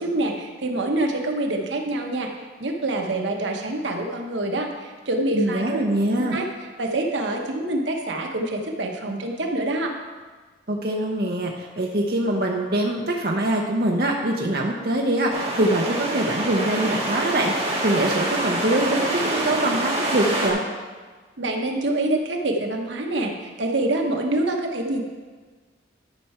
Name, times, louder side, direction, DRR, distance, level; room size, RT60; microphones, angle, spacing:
voice 1, 0.0-2.3 2.6-5.8 6.3-6.5 6.8-10.0 21.4-25.0, right 2 dB, 80° right, 2 dB, 1.1 m, -26 dB
voice 2, 5.3-6.4 10.7-20.6, right 1 dB, 55° right, 0 dB, 0.8 m, -23 dB
sound 1, 15.3-20.5, right 1 dB, 35° right, 1.6 m, -26 dB
12.0 x 5.7 x 4.3 m, 1.4 s
head